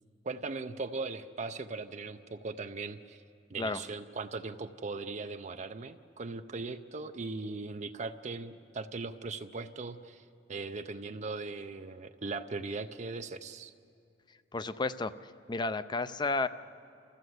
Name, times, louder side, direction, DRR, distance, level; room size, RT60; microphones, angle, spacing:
voice 1, 0.2-3.2 3.5-13.7, right 3 dB, 40° right, 8 dB, 0.5 m, -39 dB
voice 2, 14.5-15.1 15.5-16.5, left 3 dB, 25° left, 13 dB, 0.5 m, -31 dB
30.0 x 14.5 x 7.9 m, 2.5 s
head